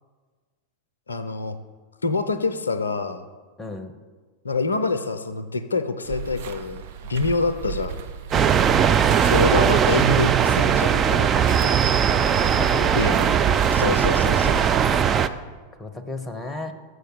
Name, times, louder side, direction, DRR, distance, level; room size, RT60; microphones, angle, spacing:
voice 1, 1.1-1.6 2.0-3.2 4.4-6.8 7.1-8.0 9.2-11.7 12.9-13.3 13.7-14.6, left 3 dB, 75° left, 10 dB, 0.5 m, -26 dB
voice 2, 3.6-3.9 8.3-8.9 12.0-12.9 13.3-13.5 15.8-16.7, left 2 dB, 10° left, 9 dB, 0.8 m, -34 dB
sound 1, 6.0-14.1, right 9 dB, 50° right, 0.7 m, -38 dB
sound 2, 8.3-15.3, right 8 dB, 25° right, 0.4 m, -19 dB
6.6 x 6.6 x 6.6 m, 1.4 s
figure-of-eight pair, 90°, 0 cm